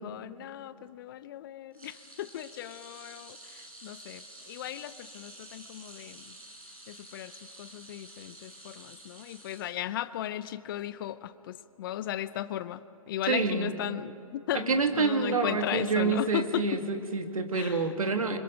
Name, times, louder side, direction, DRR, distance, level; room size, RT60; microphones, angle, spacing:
voice 1, 0.0-6.3 6.9-7.3 7.6-16.6 17.5-17.8, left 12 dB, 40° left, 16 dB, 0.6 m, -36 dB
sound 1, 1.7-10.2 10.6-10.8 12.0-12.1, right 1 dB, 90° right, 7.3 m, -50 dB
voice 2, 13.2-13.7 14.5-18.4, right 4 dB, 75° right, 6 dB, 2.1 m, -28 dB
28.0 x 25.5 x 5.2 m, 2.6 s
figure-of-eight pair, 130°, 18 cm